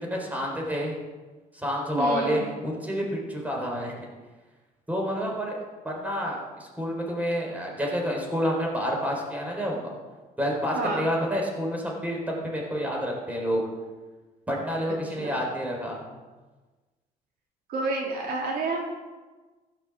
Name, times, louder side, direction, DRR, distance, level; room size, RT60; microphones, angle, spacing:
voice 1, 0.0-1.0 1.5-4.1 4.9-5.6 5.8-9.9 10.4-13.6 14.5-16.0, equal, 10° right, -1 dB, 4.1 m, -29 dB
voice 2, 1.9-2.4 10.7-11.0 15.2-15.3 17.7-18.8, right 3 dB, 65° right, -1 dB, 2.9 m, -29 dB
15.0 x 6.6 x 7.4 m, 1.3 s
cardioid pair, 110°, 17 cm